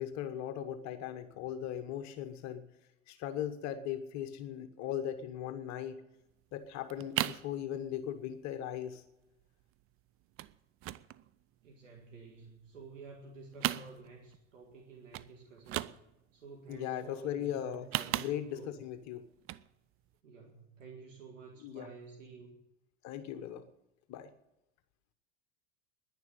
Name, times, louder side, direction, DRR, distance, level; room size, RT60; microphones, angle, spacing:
voice 1, 0.0-2.7 3.1-6.0 6.5-9.0 16.7-17.9 18.1-19.2 21.6-21.9 23.0-23.7 24.1-24.3, left 10 dB, 50° left, 10 dB, 1.2 m, -38 dB
sound 1, 6.3-6.4 6.6-7.5 7.9-8.2 8.5-8.6 8.8-9.1 9.4-9.9 10.4-10.6 10.8-12.1 12.5-13.2 13.5-14.4 14.7-14.8 15.1-15.3 15.6-16.3 17.6-18.7 19.3-19.7 20.1-20.2, right 15 dB, 40° right, 0.6 m, -37 dB
voice 2, 11.6-15.9 16.3-18.8 20.2-22.5, right 4 dB, 90° right, 0 dB, 2.1 m, -51 dB
10.5 x 10.5 x 9.2 m, 0.91 s
hypercardioid pair, 90°, 37 cm